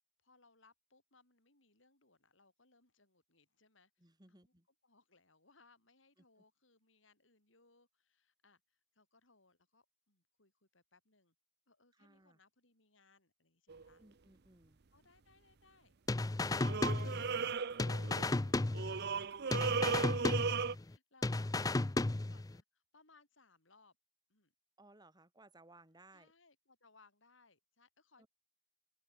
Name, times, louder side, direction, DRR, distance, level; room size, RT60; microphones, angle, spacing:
voice 1, 0.2-4.5 4.8-11.3 11.7-14.0 14.9-15.9 18.0-20.1 20.6-24.0 24.3-24.5 26.1-28.3, left 3 dB, 70° left, 8.0 m, -69 dB
voice 2, 4.0-4.7 6.2-6.3 11.9-12.4 14.0-14.8 21.5-21.6 24.8-26.3 28.2-28.3, right 2 dB, 20° right, 4.4 m, -63 dB
sound 1, 13.7-13.9 16.5-18.4 18.7-20.8, right 5 dB, 55° right, 0.7 m, -36 dB
sound 2, 16.1-17.5 17.8-19.2 19.5-20.9 21.2-22.6, left 2 dB, 20° left, 0.5 m, -34 dB
open air
head